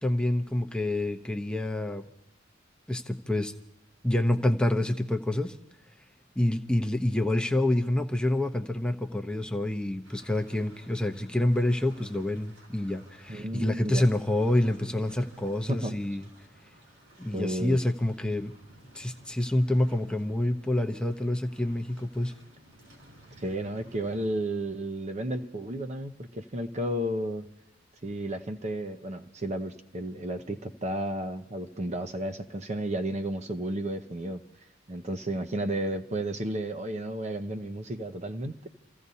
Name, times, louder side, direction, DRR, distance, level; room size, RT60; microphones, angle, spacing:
voice 1, 0.0-2.0 2.9-3.5 4.0-5.6 6.4-16.2 17.2-18.5 18.9-22.3, left 1 dB, 5° left, 5 dB, 0.8 m, -27 dB
sound 1, 10.0-24.5, right 1 dB, 80° right, 5.9 m, -56 dB
voice 2, 13.3-14.0 15.7-16.0 17.3-17.8 23.4-27.5 28.0-34.4 34.9-38.7, right 1 dB, 35° right, 7 dB, 0.8 m, -32 dB
29.0 x 15.5 x 2.8 m, 0.88 s
head